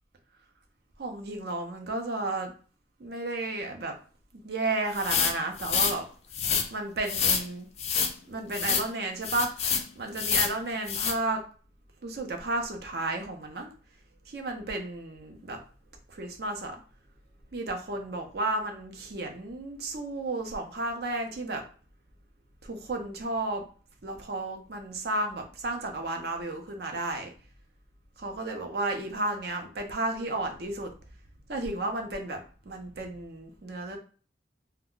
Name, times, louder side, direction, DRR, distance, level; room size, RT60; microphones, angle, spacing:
voice 1, 1.0-2.5 3.0-3.9 4.4-6.1 6.7-7.7 8.2-9.5 10.0-11.4 12.0-13.7 14.3-15.6 16.1-16.7 17.5-21.6 22.6-23.6 24.0-27.3 28.2-30.9 31.5-34.0, right 2 dB, 55° right, 3 dB, 0.6 m, -33 dB
sound 1, 5.0-6.0 6.3-6.7 7.1-7.4 7.8-8.1 8.5-8.9 9.2-9.8 10.2-10.5 10.9-11.1, left 7 dB, 35° left, 0.3 m, -27 dB
2.2 x 2.2 x 3.7 m, 0.39 s
head